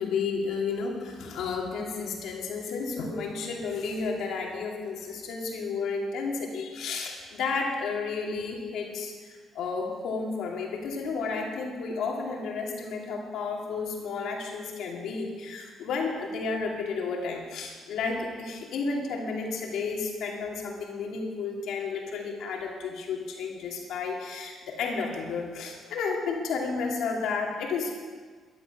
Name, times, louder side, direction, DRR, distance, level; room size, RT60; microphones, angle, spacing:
voice 1, 0.0-27.9, left 4 dB, 80° left, 0 dB, 2.7 m, -32 dB
14.5 x 11.0 x 6.0 m, 1.5 s
cardioid pair, 90°, 0 cm